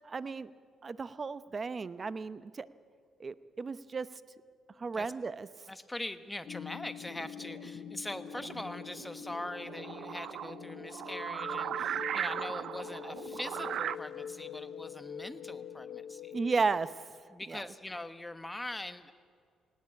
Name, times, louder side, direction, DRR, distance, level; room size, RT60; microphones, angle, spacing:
voice 1, 0.0-0.5 0.8-2.7 3.2-4.1 4.8-5.5 16.3-16.9 17.5-17.6, right 4 dB, 35° right, 15 dB, 0.8 m, -34 dB
voice 2, 4.8-5.1 5.7-16.3 17.3-19.1, left 1 dB, 10° left, 10 dB, 1.2 m, -42 dB
sound 1, 6.5-16.8, left 9 dB, 60° left, 0.7 m, -45 dB
sound 2, 7.0-14.0, right 9 dB, 70° right, 0.6 m, -39 dB
19.5 x 18.0 x 8.6 m, 2.2 s
cardioid pair, 90°, 0 cm